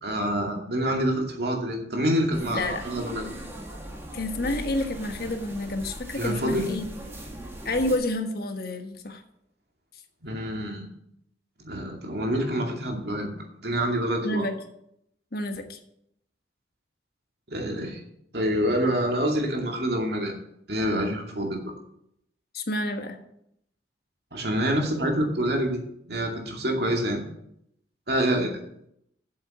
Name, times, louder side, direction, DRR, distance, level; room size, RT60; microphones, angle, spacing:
voice 1, 0.0-3.2 6.2-6.7 10.2-10.9 11.6-13.3 13.6-14.5 17.5-18.0 18.3-20.3 20.7-21.6 24.3-25.8 26.1-27.2 28.1-28.6, equal, 60° right, 1 dB, 2.4 m, -26 dB
sound 1, 2.3-8.0, right 1 dB, 15° right, 1.7 m, -39 dB
voice 2, 2.5-2.8 4.1-7.0 7.6-9.2 14.2-14.5 15.3-15.8 22.5-23.2, left 1 dB, 55° left, 6 dB, 1.3 m, -29 dB
7.8 x 7.7 x 7.1 m, 0.75 s
head